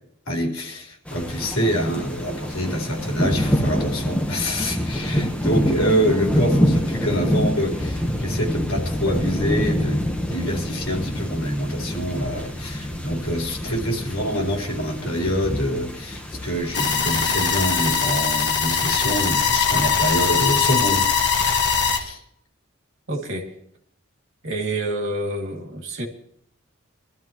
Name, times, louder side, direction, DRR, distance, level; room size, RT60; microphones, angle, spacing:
voice 1, 0.3-10.0 10.3-21.1 21.9-22.2, equal, 75° left, 0 dB, 4.0 m, -26 dB
sound 1, 1.1-18.1, equal, 5° left, 1.1 m, -26 dB
sound 2, 16.7-22.0, left 6 dB, 55° left, 1.6 m, -21 dB
voice 2, 23.1-23.5 24.4-26.1, right 1 dB, 65° right, 1 dB, 2.5 m, -28 dB
23.5 x 13.0 x 3.1 m, 0.68 s
head